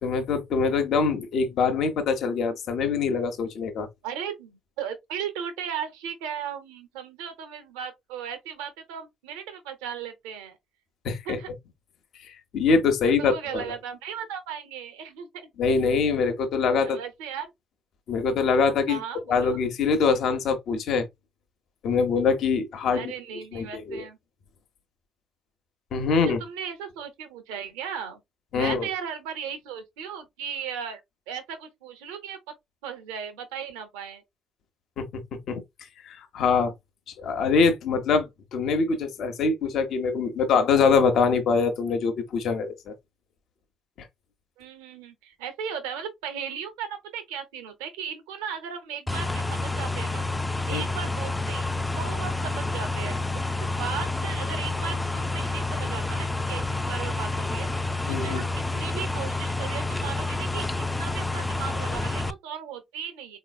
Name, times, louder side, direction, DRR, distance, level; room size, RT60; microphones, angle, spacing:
voice 1, 0.0-3.9 11.0-11.4 12.3-13.6 15.6-17.0 18.1-19.0 19.3-21.1 21.8-23.1 23.5-24.0 25.9-26.4 28.5-28.9 35.0-35.2 35.5-35.6 36.1-36.7 37.2-42.9 50.7-50.9 58.1-58.4, left 5 dB, 65° left, 0.8 m, -24 dB
voice 2, 4.0-10.6 11.2-11.5 13.0-15.5 16.8-17.5 18.9-19.6 22.9-24.2 26.1-28.2 28.5-31.0 31.3-32.5 32.8-34.2 44.6-50.2 50.7-53.4 53.8-57.7 58.1-63.4, right 8 dB, 80° right, 0.8 m, -36 dB
sound 1, 49.1-62.3, left 2 dB, 15° left, 0.4 m, -29 dB
4.0 x 2.9 x 2.2 m
hypercardioid pair, 50°, 0 cm